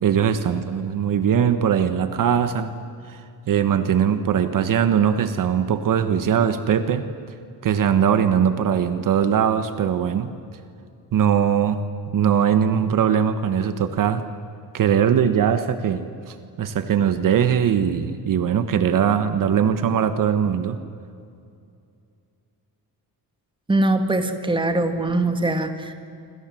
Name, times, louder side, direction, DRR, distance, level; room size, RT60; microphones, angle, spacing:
voice 1, 0.0-2.7 3.0-3.2 3.5-7.1 7.6-10.3 11.1-11.8 12.1-14.2 14.7-20.8, right 8 dB, 60° right, 10 dB, 1.4 m, -20 dB
voice 2, 23.7-25.9, right 2 dB, 15° right, 6 dB, 2.2 m, -22 dB
27.0 x 26.0 x 7.7 m, 2.5 s
cardioid pair, 135°, 37 cm